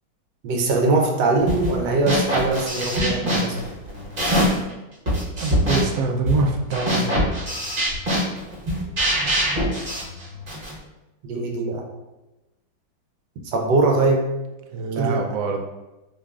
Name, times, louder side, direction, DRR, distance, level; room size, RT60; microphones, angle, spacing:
voice 1, 0.4-3.6 11.2-11.8 13.4-14.3 15.0-15.2, right 3 dB, 65° right, 2 dB, 1.2 m, -21 dB
sound 1, 1.5-1.8 2.1-4.7 5.1-10.8, equal, 30° right, 1.1 m, -23 dB
voice 2, 5.4-7.1 14.7-15.6, right 3 dB, 85° right, 3 dB, 0.8 m, -24 dB
6.4 x 3.1 x 2.4 m, 1.0 s
omnidirectional pair, 2.2 m